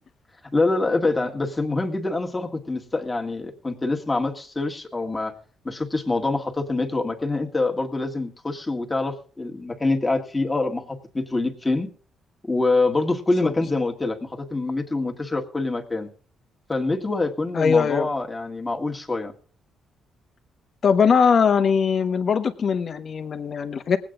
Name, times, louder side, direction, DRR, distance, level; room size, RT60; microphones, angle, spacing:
voice 1, 0.5-5.3 5.6-11.9 12.4-16.1 16.7-19.3, left 2 dB, 20° left, 2 dB, 1.9 m, -25 dB
voice 2, 17.5-18.1 20.8-24.0, left 6 dB, 50° left, 9 dB, 1.2 m, -20 dB
20.0 x 8.6 x 3.8 m, 0.41 s
cardioid pair, 90°, 0 cm